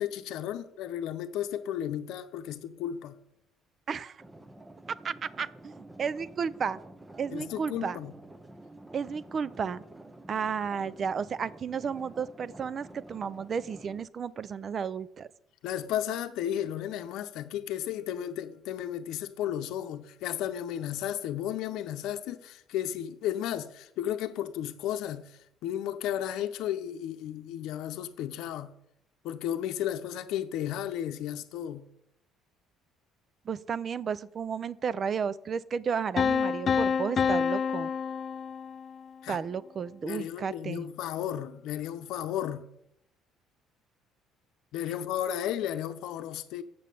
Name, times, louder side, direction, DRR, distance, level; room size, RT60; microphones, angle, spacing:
voice 1, 0.0-3.1 7.3-8.1 15.6-28.7 29.2-31.8 39.2-39.4 40.0-42.7 44.7-46.6, left 11 dB, 75° left, 0.7 m, -34 dB
voice 2, 3.9-4.2 4.9-6.8 7.2-8.0 8.9-9.8 10.3-15.3 33.5-37.9 39.3-40.9, right 6 dB, 40° right, 0.4 m, -33 dB
sound 1, 4.2-14.0, right 1 dB, 15° right, 0.7 m, -49 dB
sound 2, 36.2-39.1, left 6 dB, 45° left, 0.4 m, -28 dB
7.5 x 6.9 x 6.8 m
cardioid pair, 100°, 0 cm